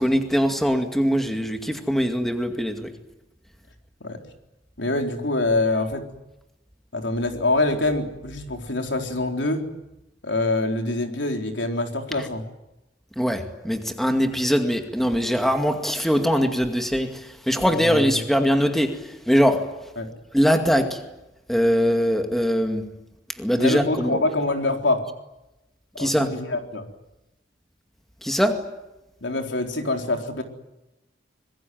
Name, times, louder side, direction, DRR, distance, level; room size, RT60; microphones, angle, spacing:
voice 1, 0.0-2.9 13.2-19.7 20.3-21.0 21.5-22.9 23.4-24.1 26.0-26.3 28.2-28.7, equal, ahead, 2.2 m, -22 dB
voice 2, 4.8-6.0 6.9-9.7 10.2-12.4 17.7-18.1 20.0-20.1 23.6-25.0 25.9-26.9 29.2-30.4, left 2 dB, 80° left, 3.9 m, -25 dB
25.0 x 22.5 x 9.3 m
head